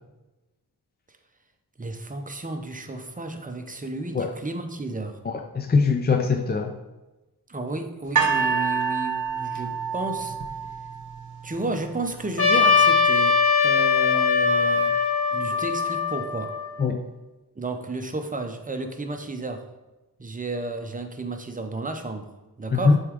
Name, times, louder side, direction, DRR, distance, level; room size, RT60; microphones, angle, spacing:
voice 1, 1.8-5.2 7.5-10.4 11.4-15.0 15.3-16.5 17.6-19.7 20.2-22.3 22.6-23.0, right 2 dB, 20° right, 5 dB, 0.6 m, -32 dB
voice 2, 5.3-6.8 16.8-17.0 22.7-23.0, left 4 dB, 25° left, 4 dB, 0.4 m, -22 dB
sound 1, 8.2-11.3 12.1-12.2, right 5 dB, 50° right, 0.9 m, -26 dB
Trumpet, 12.4-16.8, left 5 dB, 70° left, 1.2 m, -21 dB
7.9 x 3.6 x 3.6 m, 1.1 s
wide cardioid pair, 95°, 40 cm